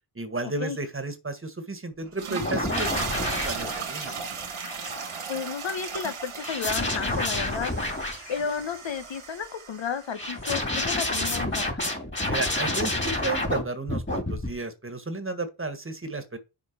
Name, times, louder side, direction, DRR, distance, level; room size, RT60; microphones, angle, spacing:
voice 1, 0.1-4.1 12.3-16.4, right 2 dB, 25° right, 1.6 m, -33 dB
sound 1, 2.0-10.3, right 6 dB, 80° right, 2.2 m, -36 dB
sound 2, 2.4-5.2 6.4-8.7 10.2-13.6 13.9-14.5, left 2 dB, 20° left, 2.8 m, -29 dB
voice 2, 5.3-7.7 8.3-11.8, left 6 dB, 65° left, 1.0 m, -32 dB
6.9 x 4.2 x 5.9 m
cardioid pair, 65°, 50 cm